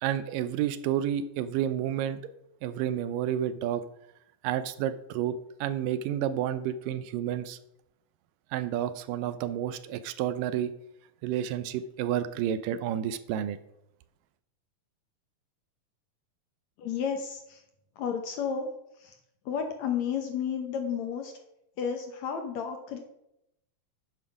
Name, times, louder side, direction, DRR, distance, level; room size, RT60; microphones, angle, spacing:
voice 1, 0.0-2.2 2.6-3.8 4.4-5.3 5.6-7.6 8.5-10.7 11.2-13.6, right 10 dB, 80° right, 13 dB, 2.2 m, -30 dB
voice 2, 16.8-17.6 18.0-18.7 19.0-19.2 19.5-21.3 21.8-23.0, left 7 dB, 65° left, 5 dB, 1.9 m, -32 dB
9.6 x 7.4 x 6.0 m, 0.82 s
omnidirectional pair, 4.0 m